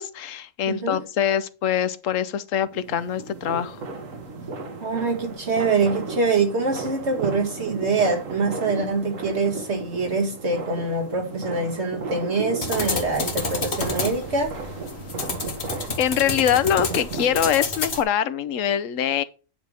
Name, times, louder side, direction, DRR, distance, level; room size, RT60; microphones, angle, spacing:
voice 1, 0.0-3.8 16.0-19.2, left 9 dB, 80° left, 1.0 m, -24 dB
voice 2, 0.7-1.0 4.8-14.5, right 3 dB, 55° right, 2.0 m, -24 dB
sound 1, 2.7-17.5, right 3 dB, 80° right, 1.7 m, -35 dB
sound 2, 12.6-18.0, left 3 dB, 55° left, 1.6 m, -30 dB
9.3 x 3.5 x 6.3 m
omnidirectional pair, 1.3 m